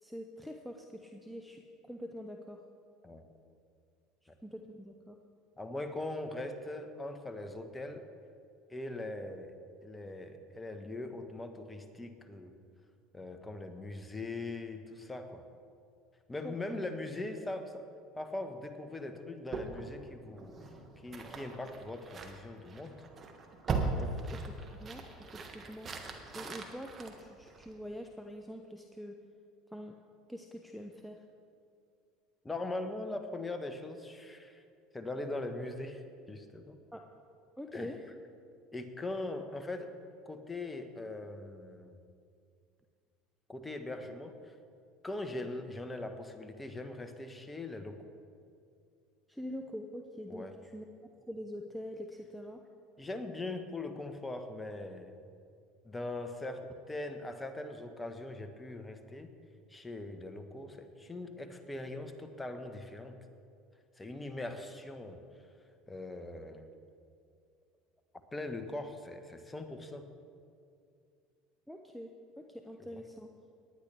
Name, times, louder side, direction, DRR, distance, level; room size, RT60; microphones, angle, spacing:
voice 1, 0.0-2.6 4.4-5.2 16.4-16.5 23.9-25.9 26.3-29.2 29.7-29.9 30.3-31.2 36.9-37.0 37.6-38.0 49.3-50.8 51.3-52.6 71.7-73.3, equal, ahead, 4 dB, 0.8 m, -45 dB
voice 2, 5.6-8.1 8.7-9.5 9.8-12.5 13.1-15.4 16.3-17.8 18.1-20.5 21.0-23.0 24.0-24.2 32.4-34.6 34.9-36.8 37.7-38.0 38.7-39.9 40.2-42.0 43.5-44.5 45.0-48.1 50.3-50.5 53.0-55.1 55.8-59.3 59.7-63.2 64.0-65.2 65.9-66.7 68.3-70.1 72.9-73.0, left 2 dB, 15° left, 7 dB, 1.2 m, -41 dB
sound 1, 19.5-27.9, right 3 dB, 35° right, 1.6 m, -40 dB
19.0 x 10.0 x 3.4 m, 2.4 s
hypercardioid pair, 75°, 0 cm